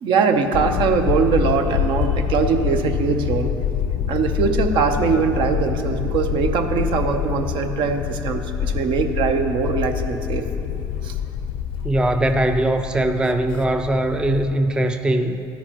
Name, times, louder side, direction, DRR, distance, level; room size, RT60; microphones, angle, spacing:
voice 1, 0.0-3.5 4.1-10.4 11.0-11.1, right 5 dB, 60° right, 7 dB, 0.8 m, -21 dB
sound 1, 0.5-14.4, left 8 dB, 65° left, 0.5 m, -26 dB
voice 2, 11.8-15.4, right 1 dB, 10° right, 7 dB, 0.4 m, -21 dB
13.0 x 9.5 x 3.0 m, 2.7 s
supercardioid pair, 95°, 10 cm